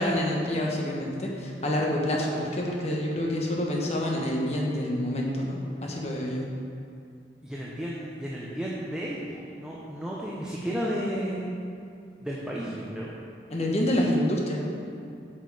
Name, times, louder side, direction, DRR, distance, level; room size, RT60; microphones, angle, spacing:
voice 1, 0.0-6.4 13.5-14.6, left 1 dB, 40° left, -2 dB, 1.3 m, -27 dB
voice 2, 7.4-11.5 12.2-13.1, equal, 5° right, -5 dB, 0.8 m, -33 dB
8.2 x 6.3 x 4.9 m, 2.5 s
head